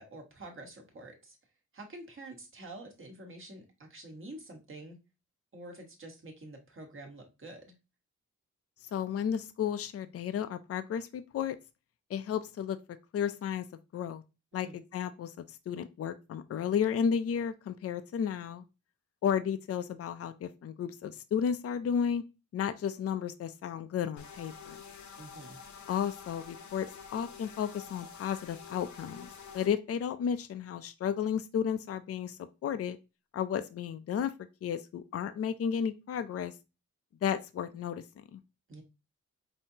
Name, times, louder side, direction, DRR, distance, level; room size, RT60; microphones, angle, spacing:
voice 1, 0.0-1.4 1.7-5.0 5.5-7.7 14.5-14.8 25.2-25.6 38.7-38.8, right 2 dB, 45° right, 2 dB, 1.3 m, -47 dB
voice 2, 8.9-11.6 12.1-12.8 13.1-13.7 13.9-14.2 14.5-18.6 19.2-22.2 22.5-24.8 25.9-29.3 29.5-33.0 33.3-34.3 34.6-36.5 37.2-38.4, left 8 dB, 50° left, 11 dB, 0.4 m, -33 dB
sound 1, 24.2-29.7, left 6 dB, 70° left, 0.8 m, -48 dB
5.3 x 2.8 x 2.7 m, 0.27 s
wide cardioid pair, 135°, 30 cm